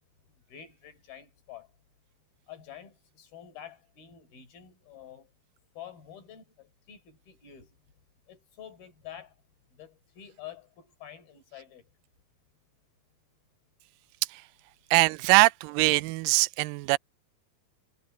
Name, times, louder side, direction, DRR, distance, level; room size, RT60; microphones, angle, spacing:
voice 1, 0.5-1.7 2.5-5.3 5.8-7.7 8.3-9.4 9.8-11.8, left 10 dB, 85° left, 6.0 m, -48 dB
voice 2, 14.9-17.0, right 23 dB, 80° right, 2.1 m, -22 dB
omnidirectional pair, 4.2 m